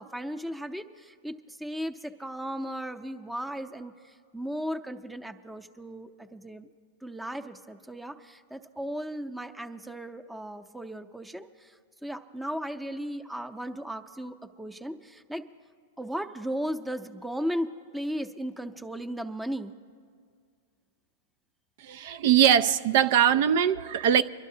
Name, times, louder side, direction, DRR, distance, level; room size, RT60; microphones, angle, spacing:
voice 1, 0.0-6.7 7.0-11.8 12.0-15.4 16.0-19.7, equal, 5° right, 7 dB, 0.6 m, -36 dB
voice 2, 21.8-24.2, right 9 dB, 60° right, 11 dB, 0.4 m, -21 dB
24.5 x 12.0 x 2.8 m, 2.2 s
hypercardioid pair, 125°, 0 cm